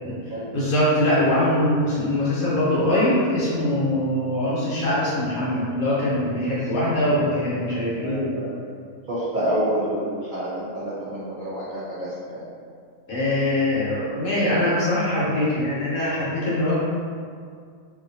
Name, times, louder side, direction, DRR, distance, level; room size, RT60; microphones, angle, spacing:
voice 1, 0.5-8.3 13.1-16.8, left 1 dB, 75° left, -8 dB, 1.3 m, -22 dB
voice 2, 6.5-6.8 7.2-7.3 8.0-8.5 9.1-12.4 13.7-14.1, equal, 90° right, -9 dB, 0.4 m, -29 dB
2.9 x 2.5 x 2.6 m, 2.2 s
omnidirectional pair, 1.5 m